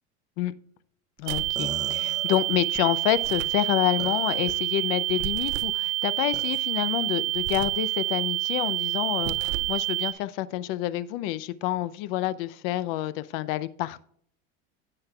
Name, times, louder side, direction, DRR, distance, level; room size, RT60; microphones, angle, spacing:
voice 1, 1.2-14.0, left 14 dB, 65° left, 16 dB, 0.6 m, -28 dB
sound 1, 1.2-1.7 3.1-3.6 5.2-5.8 7.3-7.9 9.1-9.8, right 12 dB, 40° right, 0.4 m, -37 dB
sound 2, 1.3-10.1, right 18 dB, 60° right, 1.2 m, -28 dB
sound 3, 1.6-2.9 4.0-4.5 5.1-5.5 6.3-6.6, right 2 dB, 5° right, 0.7 m, -40 dB
16.5 x 5.9 x 2.3 m, 0.62 s
cardioid pair, 170°, 29 cm